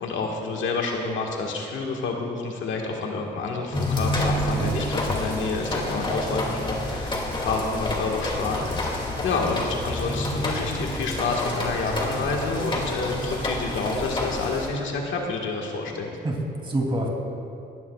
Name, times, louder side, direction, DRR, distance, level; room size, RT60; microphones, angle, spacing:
voice 1, 0.0-16.1, left 3 dB, 75° left, 0 dB, 1.7 m, -29 dB
sound 1, 3.7-14.7, left 1 dB, 25° left, 2.5 m, -28 dB
voice 2, 4.5-5.0 16.2-17.1, right 1 dB, 25° right, 0 dB, 2.9 m, -27 dB
19.0 x 15.0 x 2.4 m, 2.5 s
cardioid pair, 90°, 20 cm